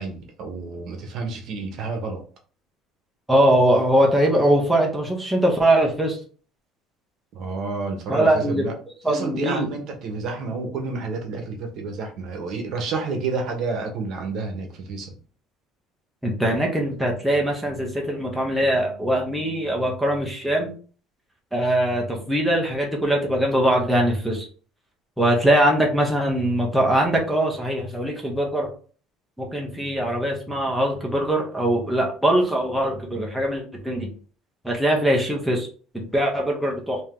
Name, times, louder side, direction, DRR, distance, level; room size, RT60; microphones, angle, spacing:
voice 1, 0.0-2.2 7.3-8.7 9.1-15.2, right 4 dB, 50° right, 4 dB, 1.0 m, -30 dB
voice 2, 3.3-6.2 8.1-8.6 9.0-9.7 16.2-20.7 21.5-24.5 25.2-28.7 29.4-34.1 34.6-35.7 35.9-37.0, right 1 dB, ahead, -1 dB, 0.8 m, -21 dB
3.5 x 2.8 x 3.7 m, 0.40 s
cardioid pair, 160°, 0 cm